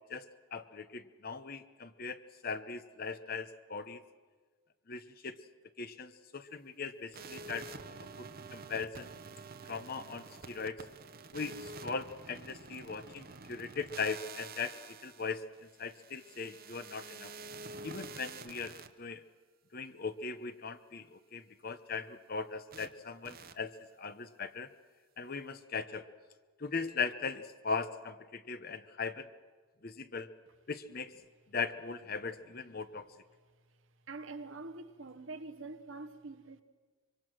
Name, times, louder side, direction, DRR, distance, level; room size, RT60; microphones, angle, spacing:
voice 1, 0.1-4.0 4.9-5.4 5.8-8.3 8.5-9.1 9.7-10.8 11.3-15.4 15.8-17.3 17.8-19.2 19.7-24.7 25.2-26.1 26.6-29.3 29.8-30.3 30.7-31.1 31.5-33.1, left 5 dB, 45° left, 0.9 m, -39 dB
sound 1, 7.1-18.9 22.7-22.9 23.2-23.5, right 4 dB, 45° right, 0.9 m, -48 dB
voice 2, 34.1-36.6, right 3 dB, 60° right, 1.1 m, -45 dB
25.0 x 24.0 x 6.2 m
head